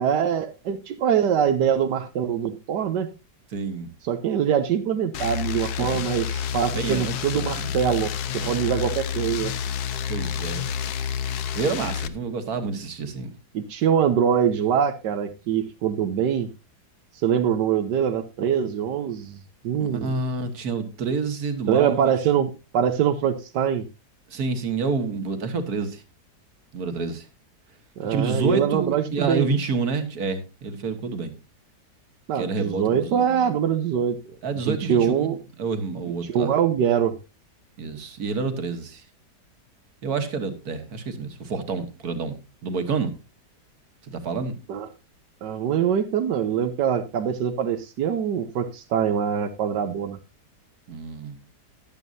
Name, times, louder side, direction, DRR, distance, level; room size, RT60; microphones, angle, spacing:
voice 1, 0.0-3.1 4.0-9.5 13.5-16.5 17.2-20.1 21.7-23.8 28.0-29.5 32.3-34.4 34.7-35.4 36.2-37.2 44.7-44.9 45.4-50.2, right 8 dB, 90° right, 8 dB, 1.5 m, -23 dB
voice 2, 3.5-3.9 5.8-5.9 6.7-7.7 8.4-8.7 10.1-10.7 11.5-13.3 19.8-22.1 24.3-26.0 26.7-27.3 28.0-31.3 32.4-33.5 34.4-36.5 37.8-39.0 40.0-42.3 42.6-43.1 44.0-44.5 50.9-51.4, right 4 dB, 65° right, 8 dB, 2.0 m, -28 dB
sound 1, 5.1-12.1, left 8 dB, 70° left, 1.3 m, -29 dB
15.0 x 11.0 x 2.6 m, 0.26 s
omnidirectional pair, 1.8 m